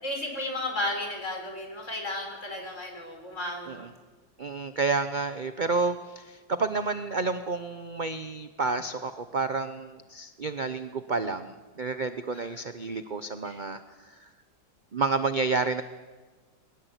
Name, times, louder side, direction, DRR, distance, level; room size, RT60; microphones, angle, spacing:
voice 1, 0.0-3.9 12.3-12.6 13.4-13.6, left 1 dB, 40° left, 3 dB, 5.3 m, -34 dB
voice 2, 4.4-14.3 14.9-15.8, right 4 dB, 45° right, 10 dB, 0.6 m, -30 dB
22.0 x 19.5 x 8.1 m, 1.3 s
omnidirectional pair, 2.0 m